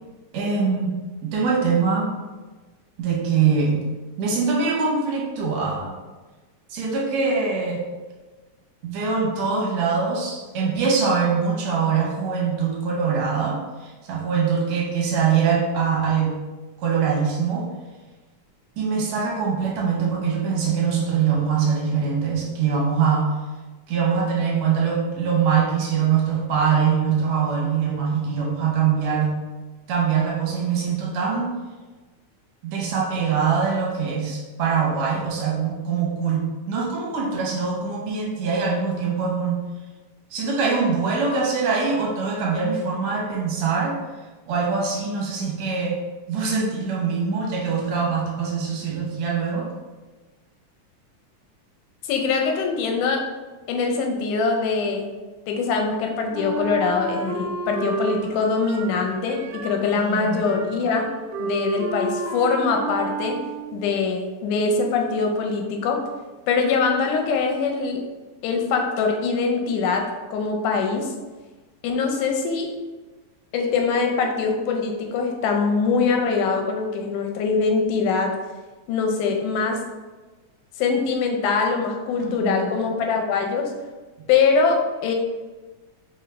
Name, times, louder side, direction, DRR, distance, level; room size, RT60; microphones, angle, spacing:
voice 1, 0.3-1.0 1.2-2.1 3.0-3.8 4.2-5.9 6.7-7.8 8.8-16.4 16.8-17.7 18.8-23.3 23.9-29.3 29.9-31.6 32.6-39.6 40.3-44.0 44.5-46.0 46.3-49.7 59.9-60.4 82.2-82.7, right 6 dB, 70° right, -3 dB, 1.9 m, -23 dB
voice 2, 52.0-53.2 53.7-55.1 55.5-61.1 61.4-63.4 63.7-66.0 66.5-68.0 68.4-71.1 71.8-72.7 73.5-78.4 78.9-79.8 80.8-83.7 84.3-85.1, left 4 dB, 90° left, 3 dB, 2.1 m, -23 dB
Wind instrument woodwind instrument, 56.3-63.9, right 4 dB, 90° right, 1.4 m, -31 dB
5.0 x 2.4 x 3.2 m, 1.3 s
omnidirectional pair, 3.4 m